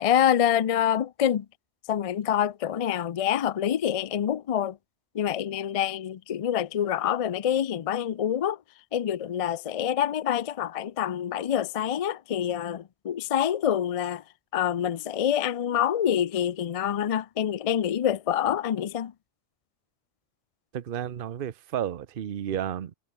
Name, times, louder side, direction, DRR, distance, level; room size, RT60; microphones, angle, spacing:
voice 1, 0.0-1.5 1.9-4.8 5.1-8.6 8.9-14.2 14.5-19.1, left 10 dB, 60° left, 0.3 m, -26 dB
voice 2, 20.7-22.9, right 10 dB, 55° right, 0.9 m, -32 dB
omnidirectional pair, 1.2 m